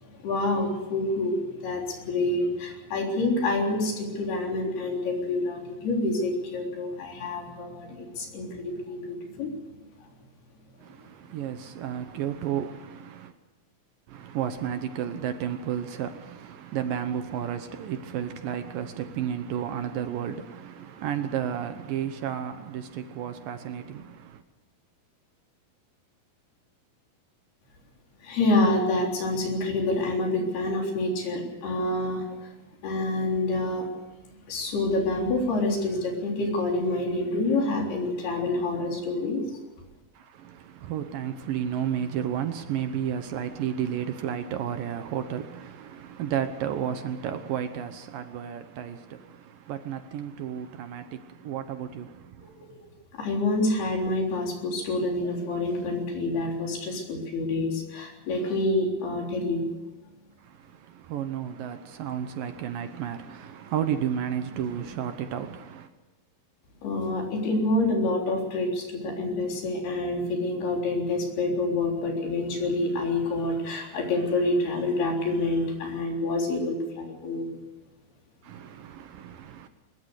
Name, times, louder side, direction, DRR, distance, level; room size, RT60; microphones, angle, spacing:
voice 1, 0.2-9.5 28.2-32.5 32.8-33.9 34.5-39.6 52.4-52.8 53.1-59.7 66.8-77.5, left 2 dB, 75° left, 5.7 m, -27 dB
voice 2, 10.8-13.3 14.1-24.4 40.1-52.7 60.4-65.9 78.4-79.7, right 9 dB, 70° right, 2.4 m, -32 dB
21.5 x 21.0 x 6.6 m
omnidirectional pair, 4.7 m